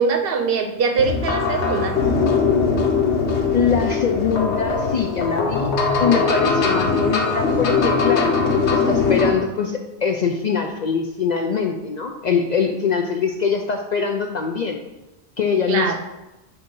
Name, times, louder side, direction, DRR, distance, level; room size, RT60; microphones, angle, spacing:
voice 1, 0.0-2.0 15.7-15.9, right 5 dB, 65° right, 6 dB, 0.8 m, -21 dB
sound 1, 1.0-9.3, left 4 dB, 85° left, 1.1 m, -20 dB
voice 2, 3.5-5.7 6.0-14.8 15.4-15.9, left 6 dB, 55° left, 4 dB, 0.5 m, -23 dB
7.8 x 2.7 x 5.4 m, 1.0 s
omnidirectional pair, 1.1 m